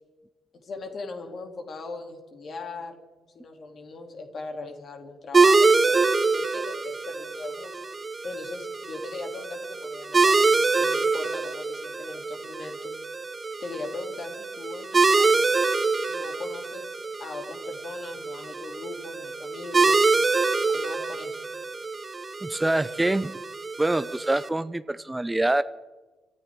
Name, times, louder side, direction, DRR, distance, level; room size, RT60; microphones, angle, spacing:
voice 1, 0.6-3.0 3.3-7.7 8.2-12.9 13.6-15.5 16.1-20.0 20.7-21.4, left 3 dB, 50° left, 4 dB, 3.0 m, -39 dB
sound 1, 5.3-24.5, right 4 dB, 30° right, 1.2 m, -25 dB
voice 2, 22.4-23.3 23.8-25.6, right 2 dB, 15° right, 14 dB, 0.6 m, -25 dB
26.5 x 14.0 x 3.7 m, 1.2 s
figure-of-eight pair, 40°, 0 cm